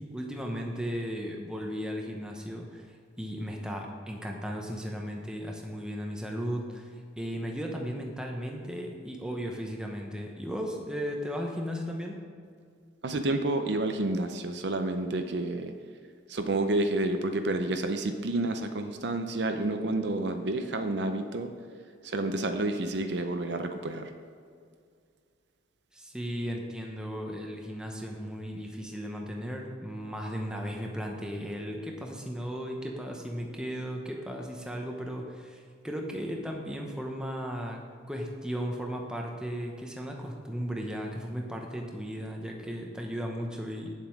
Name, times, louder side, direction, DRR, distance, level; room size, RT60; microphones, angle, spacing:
voice 1, 0.0-12.2 25.9-37.8 38.1-44.0, equal, 5° right, 1 dB, 0.9 m, -36 dB
voice 2, 13.0-15.7 16.3-21.5 22.0-24.1, right 2 dB, 60° right, 7 dB, 0.6 m, -29 dB
9.3 x 7.4 x 4.7 m, 2.2 s
head